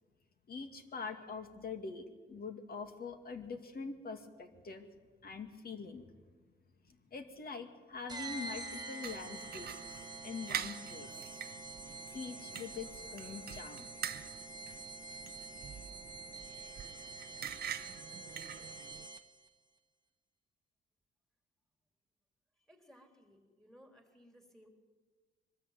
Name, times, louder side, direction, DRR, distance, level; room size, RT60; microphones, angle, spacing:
voice 1, 0.5-4.9 5.2-6.1 6.9-11.1 12.1-13.9, left 5 dB, 50° left, 7 dB, 2.3 m, -44 dB
sound 1, 8.1-19.5, right 3 dB, 20° right, 1.3 m, -47 dB
sound 2, 9.0-19.1, right 9 dB, 55° right, 0.7 m, -46 dB
voice 2, 22.6-24.7, equal, ahead, 4 dB, 3.7 m, -61 dB
22.5 x 13.0 x 9.2 m, 1.4 s
cardioid pair, 90°, 20 cm